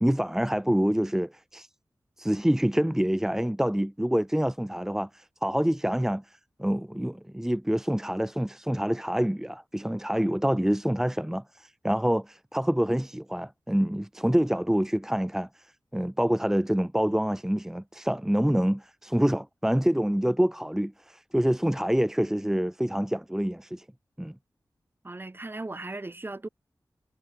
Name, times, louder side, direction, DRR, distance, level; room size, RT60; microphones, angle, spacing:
voice 1, 0.0-1.7 2.2-15.7 15.9-23.8 24.2-24.3, equal, 5° right, 1.4 m, -26 dB
voice 2, 25.0-26.5, right 2 dB, 30° right, 3.5 m, -37 dB
wide cardioid pair, 105°, 7 cm